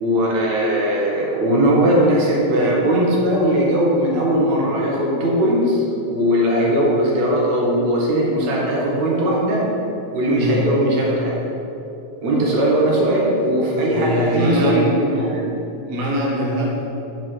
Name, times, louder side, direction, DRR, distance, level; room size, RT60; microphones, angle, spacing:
voice 1, 0.0-5.8 6.1-9.7 10.1-11.3 12.2-15.5, right 1 dB, 70° right, -3 dB, 2.5 m, -19 dB
voice 2, 10.3-10.7 13.9-15.0 15.9-16.8, equal, 55° right, -3 dB, 0.9 m, -22 dB
6.0 x 5.0 x 6.2 m, 2.9 s
omnidirectional pair, 3.4 m